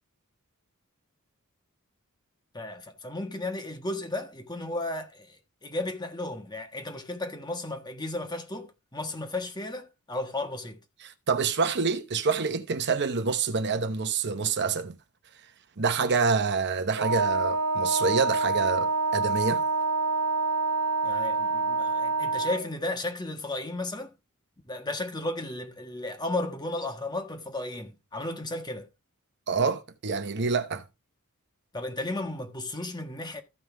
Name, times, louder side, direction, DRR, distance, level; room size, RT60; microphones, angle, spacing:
voice 1, 2.5-10.8 21.0-24.1 24.7-28.9 31.7-33.4, left 2 dB, 20° left, 1.4 m, -34 dB
voice 2, 11.0-15.0 15.8-19.6 29.5-30.8, right 5 dB, 50° right, 0.9 m, -27 dB
Wind instrument woodwind instrument, 17.0-22.7, right 3 dB, 80° right, 1.0 m, -27 dB
14.5 x 5.5 x 3.4 m
head